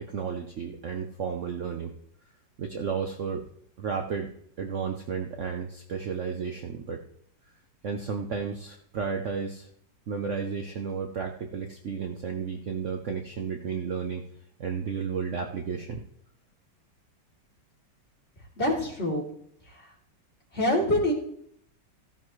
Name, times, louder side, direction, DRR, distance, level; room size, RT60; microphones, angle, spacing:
voice 1, 0.0-1.9 2.6-3.5 3.8-4.3 4.6-7.0 7.8-9.7 10.1-14.3 14.6-16.0, right 6 dB, 55° right, 4 dB, 0.9 m, -32 dB
voice 2, 18.6-19.2 19.7-19.9 20.5-21.1, left 1 dB, 35° left, -4 dB, 3.5 m, -25 dB
15.0 x 11.0 x 3.2 m, 0.69 s
omnidirectional pair, 1.9 m